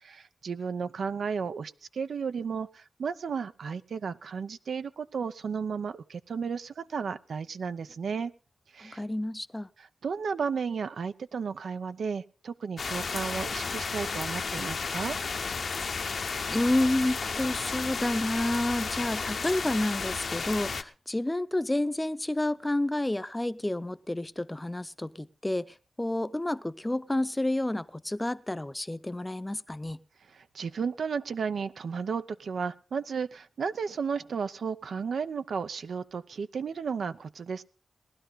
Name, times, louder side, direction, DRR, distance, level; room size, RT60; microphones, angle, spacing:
voice 1, 0.0-8.3 8.7-9.0 9.8-15.2 30.3-37.6, right 6 dB, 80° right, 12 dB, 0.6 m, -33 dB
voice 2, 8.8-9.7 16.5-30.0, left 1 dB, 15° left, 14 dB, 0.6 m, -30 dB
sound 1, 12.8-20.8, left 5 dB, 65° left, 0.8 m, -33 dB
18.5 x 11.5 x 4.0 m, 0.35 s
cardioid pair, 60°, 0 cm